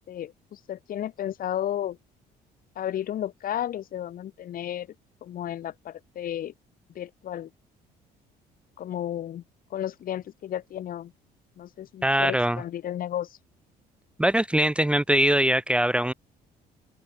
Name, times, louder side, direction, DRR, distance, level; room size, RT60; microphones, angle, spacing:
voice 1, 0.1-2.0 2.7-4.9 5.2-6.5 6.9-7.5 8.8-9.4 9.7-11.1 11.6-13.4, left 11 dB, 60° left, 2.8 m, -33 dB
voice 2, 12.0-12.6 14.2-16.1, right 1 dB, 5° right, 0.9 m, -22 dB
open air
cardioid pair, 110°, 17 cm